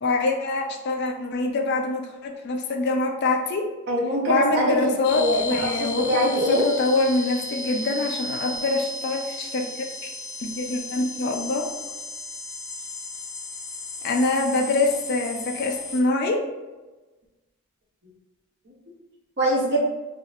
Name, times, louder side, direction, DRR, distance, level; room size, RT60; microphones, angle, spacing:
voice 1, 0.0-3.7 4.3-6.1 6.5-10.1 10.4-11.7 14.0-16.4, left 3 dB, 50° left, 2 dB, 0.4 m, -25 dB
voice 2, 3.9-6.6 18.7-18.8 19.4-19.8, right 1 dB, 50° right, -3 dB, 0.9 m, -23 dB
sound 1, 5.0-16.0, left 2 dB, 80° left, 0.8 m, -35 dB
4.0 x 2.6 x 2.5 m, 1.2 s
head